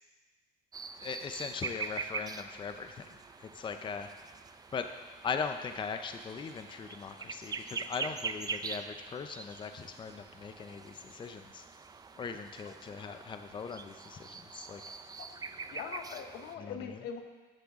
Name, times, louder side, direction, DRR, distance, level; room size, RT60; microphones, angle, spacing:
sound 1, 0.7-16.5, right 4 dB, 20° right, 0.4 m, -43 dB
voice 1, 1.0-4.4 4.7-4.9 5.2-11.7 12.2-14.8 16.6-17.0, left 5 dB, 30° left, 7 dB, 0.6 m, -40 dB
voice 2, 15.7-17.2, left 7 dB, 75° left, 6 dB, 1.0 m, -41 dB
13.5 x 7.6 x 3.6 m, 1.4 s
cardioid pair, 110°, 17 cm